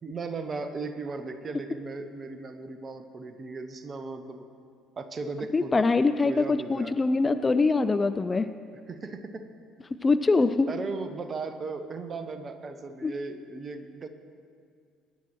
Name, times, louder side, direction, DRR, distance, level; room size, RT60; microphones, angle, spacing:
voice 1, 0.0-4.4 5.0-5.9 6.2-6.9 8.9-9.4 10.7-14.1, right 3 dB, 35° right, 9 dB, 0.9 m, -37 dB
voice 2, 5.5-8.5 10.0-10.7 13.0-13.1, left 3 dB, 25° left, 11 dB, 0.4 m, -23 dB
22.0 x 10.5 x 3.1 m, 2.2 s
figure-of-eight pair, 55°, 0 cm